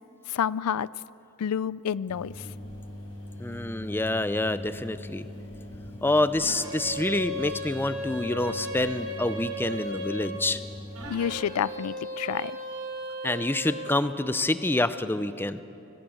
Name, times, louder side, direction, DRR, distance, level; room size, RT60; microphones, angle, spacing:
voice 1, 0.3-0.9 1.4-2.5 11.1-12.5, left 8 dB, 85° left, 20 dB, 0.4 m, -29 dB
sound 1, 2.1-11.1, left 1 dB, 70° left, 4.8 m, -42 dB
voice 2, 3.4-5.3 6.0-10.6 13.2-15.6, left 2 dB, 10° left, 13 dB, 0.5 m, -27 dB
sound 2, 6.4-10.4 10.9-14.0, equal, 75° right, 4.2 m, -36 dB
24.5 x 18.5 x 7.7 m, 2.9 s
head